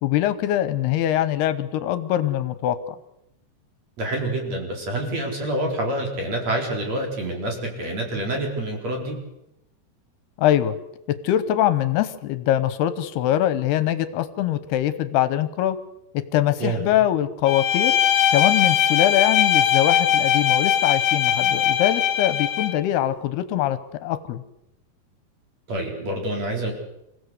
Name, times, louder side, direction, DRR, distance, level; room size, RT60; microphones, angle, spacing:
voice 1, 0.0-3.0 10.4-10.7 11.1-15.8 16.1-17.9 18.3-24.4, left 12 dB, 80° left, 13 dB, 2.9 m, -23 dB
voice 2, 4.0-9.2 16.6-16.9 25.7-26.7, right 1 dB, 40° right, 1 dB, 5.1 m, -27 dB
Bowed string instrument, 17.5-22.8, left 10 dB, 60° left, 1.9 m, -20 dB
26.5 x 16.5 x 8.1 m, 0.86 s
omnidirectional pair, 4.7 m